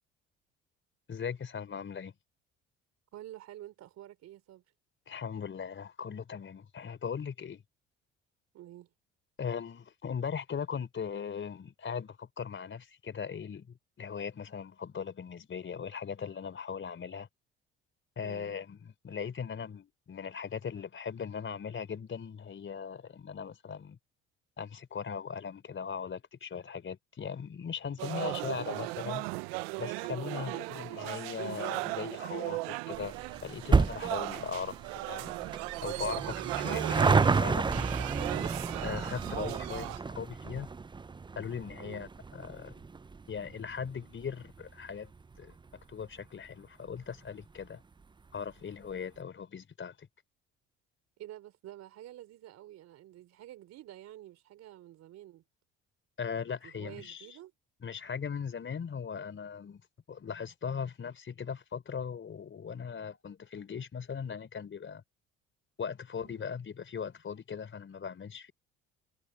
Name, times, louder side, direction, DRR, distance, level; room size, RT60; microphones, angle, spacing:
voice 1, 1.1-2.1 5.1-7.6 9.4-17.3 18.2-24.0 24.6-29.3 29.8-35.3 35.8-38.1 38.8-40.7 41.4-42.8 43.3-45.1 45.4-45.5 45.9-47.8 48.3-50.1 56.2-57.3 57.8-59.8 60.1-65.0 65.8-68.5, left 6 dB, 40° left, 4.3 m, -39 dB
voice 2, 3.1-4.6 8.5-8.9 18.2-18.5 30.4-30.8 36.4-36.6 41.8-42.1 51.2-55.4 56.6-57.5 66.2-66.5, right 13 dB, 65° right, 3.5 m, -49 dB
sound 1, 28.0-40.0, right 24 dB, 80° right, 0.9 m, -37 dB
sound 2, 32.9-45.7 46.0-46.1 47.0-47.1 47.3-47.4 47.6-47.7, right 4 dB, 15° right, 0.6 m, -31 dB
hypercardioid pair, 65°, 29 cm